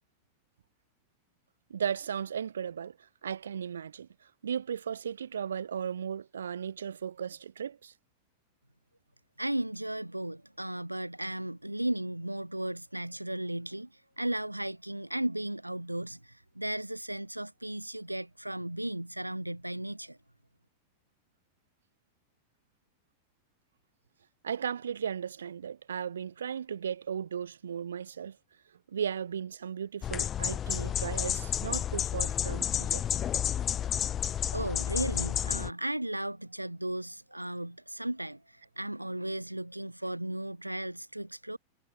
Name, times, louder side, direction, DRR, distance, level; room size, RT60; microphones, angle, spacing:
voice 1, 1.7-7.9 24.4-28.4 28.9-33.0, right 8 dB, 70° right, 2.4 m, -36 dB
voice 2, 9.4-20.2 34.5-41.6, right 1 dB, 85° right, 1.8 m, -35 dB
sound 1, 30.0-35.7, left 10 dB, 25° left, 1.8 m, -31 dB
figure-of-eight pair, 90°, 0 cm